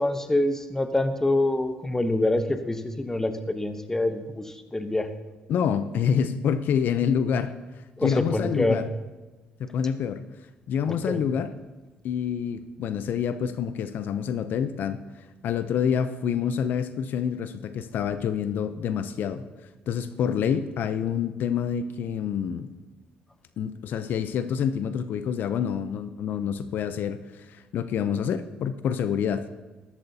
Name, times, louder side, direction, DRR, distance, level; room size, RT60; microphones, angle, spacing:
voice 1, 0.0-5.1 8.0-8.8 10.9-11.2, left 1 dB, 15° left, 9 dB, 0.9 m, -26 dB
voice 2, 5.5-8.9 9.6-10.2 10.7-11.5 12.0-19.4 19.9-22.7 23.6-29.4, left 7 dB, 65° left, 12 dB, 0.5 m, -27 dB
13.0 x 12.0 x 2.8 m, 1.2 s
cardioid pair, 85°, 3 cm